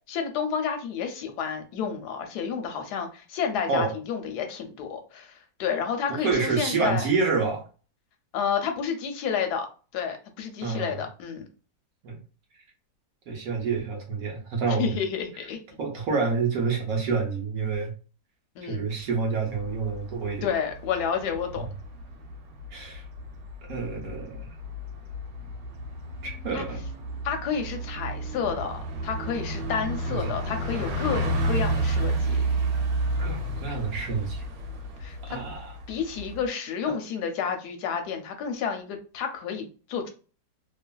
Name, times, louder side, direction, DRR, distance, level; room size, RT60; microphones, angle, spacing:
voice 1, 0.1-5.3 5.6-7.1 8.3-9.7 9.9-11.4 14.7-15.6 18.6-18.9 20.4-21.7 26.5-26.6 27.2-32.4 35.0-35.4 35.9-40.1, left 7 dB, 75° left, 5 dB, 1.1 m, -30 dB
voice 2, 6.1-7.6 10.6-11.0 12.0-12.2 13.3-15.0 15.8-17.9 18.6-20.5 21.6-21.7 22.7-23.0 23.7-24.5 26.2-26.8 30.1-30.3 31.1-31.2 33.2-34.4 35.2-35.7 36.9-37.0, right 4 dB, 65° right, 0 dB, 1.0 m, -28 dB
Bus, 19.4-36.5, right 1 dB, 85° right, 1.3 m, -31 dB
2.8 x 2.4 x 2.2 m, 0.36 s
omnidirectional pair, 1.9 m